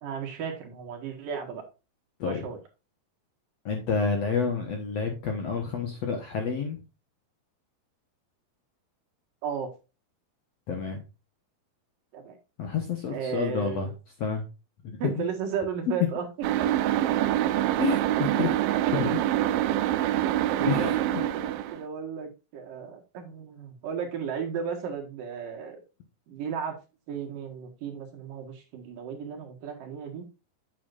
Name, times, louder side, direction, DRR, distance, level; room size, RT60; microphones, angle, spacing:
voice 1, 0.0-1.6 2.3-2.6 9.4-9.7 12.1-12.4 13.1-13.8 15.0-16.3 16.6-16.8 17.2-17.3 18.7-19.1 20.5-25.8 26.3-26.8 27.1-30.2, right 7 dB, 65° right, 2 dB, 3.1 m, -35 dB
voice 2, 3.7-6.8 10.7-11.0 12.6-13.9 14.2-14.4 14.8-15.3 17.8-18.6 18.9-19.2 20.6-21.2, left 5 dB, 60° left, 3 dB, 1.8 m, -29 dB
sound 1, 16.4-21.8, right 13 dB, 80° right, 2.1 m, -25 dB
8.6 x 7.1 x 2.5 m, 0.29 s
omnidirectional pair, 4.4 m